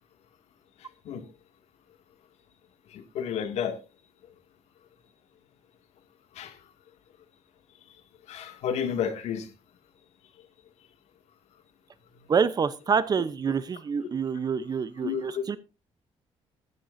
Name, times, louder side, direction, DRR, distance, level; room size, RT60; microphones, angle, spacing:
voice 1, 2.9-3.8 6.4-6.6 8.3-9.5 15.0-15.6, left 8 dB, 80° left, 8 dB, 2.3 m, -31 dB
voice 2, 12.3-15.6, right 6 dB, 35° right, 15 dB, 0.8 m, -27 dB
16.0 x 11.0 x 2.7 m, 0.28 s
cardioid pair, 130°, 11 cm